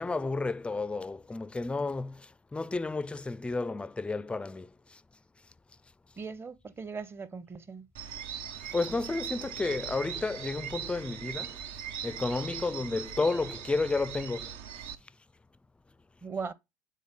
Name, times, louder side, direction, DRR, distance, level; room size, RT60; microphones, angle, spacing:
voice 1, 0.0-5.0 8.7-11.6 12.0-14.5, left 3 dB, 10° left, 0.4 m, -32 dB
voice 2, 6.2-7.9 12.7-12.8 16.2-16.5, right 5 dB, 25° right, 0.8 m, -39 dB
sound 1, 8.0-15.0, right 9 dB, 65° right, 0.6 m, -40 dB
8.4 x 3.8 x 3.6 m
hypercardioid pair, 65°, 9 cm